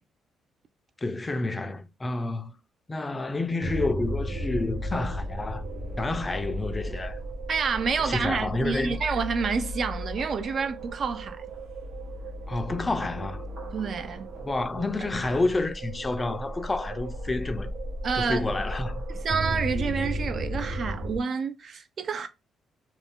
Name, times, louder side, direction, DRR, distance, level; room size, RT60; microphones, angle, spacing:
voice 1, 1.0-2.5 2.9-5.6 6.0-7.2 8.0-9.0 12.5-13.5 14.4-17.7 18.1-19.0, left 2 dB, 25° left, 0.4 m, -29 dB
sound 1, 3.6-21.2, equal, 80° right, 1.0 m, -34 dB
voice 2, 7.5-11.5 13.7-14.3 18.0-18.4 19.1-22.3, right 5 dB, 50° right, 0.4 m, -29 dB
2.5 x 2.1 x 3.4 m
cardioid pair, 90°, 0 cm